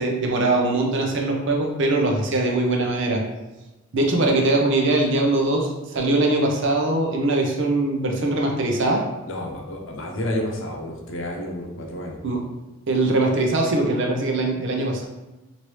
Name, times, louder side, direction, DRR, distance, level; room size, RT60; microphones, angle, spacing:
voice 1, 0.0-3.2 3.9-9.0 12.2-12.4 12.9-15.0, right 2 dB, 60° right, 1 dB, 0.6 m, -21 dB
voice 2, 9.3-12.2, left 1 dB, 65° left, 0 dB, 0.7 m, -30 dB
3.1 x 2.7 x 3.1 m, 1.1 s
head